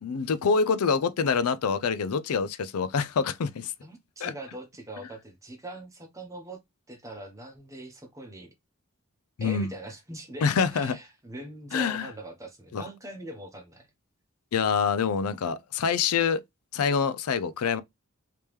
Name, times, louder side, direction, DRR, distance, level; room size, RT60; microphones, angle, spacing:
voice 1, 0.0-3.7 4.2-4.3 9.4-9.7 10.4-11.0 11.7-12.1 12.7-12.8 14.5-16.4 16.7-17.8, left 5 dB, 90° left, 0.4 m, -26 dB
voice 2, 3.8-6.6 6.9-8.5 9.4-13.9, right 1 dB, 15° right, 0.9 m, -42 dB
3.4 x 2.9 x 3.1 m
head